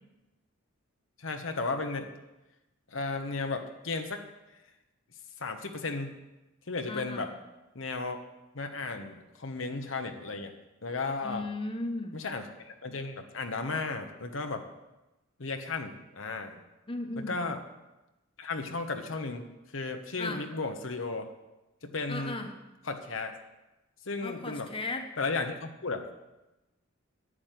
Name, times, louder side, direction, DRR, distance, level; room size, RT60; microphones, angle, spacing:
voice 1, 1.2-2.1 2.9-4.2 5.4-6.2 6.7-7.3 7.7-8.2 8.5-10.5 10.8-11.5 12.1-14.6 15.4-16.5 17.2-17.6 18.4-19.5 19.7-21.3 21.8-22.4 22.8-23.4 24.1-24.7 25.2-26.1, left 3 dB, 65° left, 5 dB, 1.1 m, -34 dB
voice 2, 6.9-7.3 11.2-12.2 16.9-17.3 20.2-20.4 22.1-22.5 24.2-25.1, left 2 dB, 25° left, 4 dB, 1.3 m, -36 dB
11.5 x 9.6 x 7.7 m, 1.0 s
head